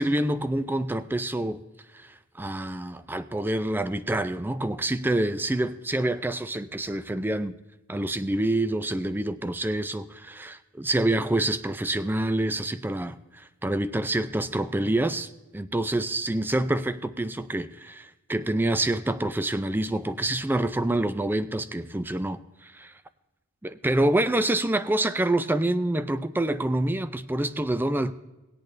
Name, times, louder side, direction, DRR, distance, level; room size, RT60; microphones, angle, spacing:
voice 1, 0.0-1.6 1.9-7.5 7.9-22.9 23.6-28.1, right 1 dB, 10° right, 0.4 m, -27 dB
18.5 x 8.5 x 3.2 m
head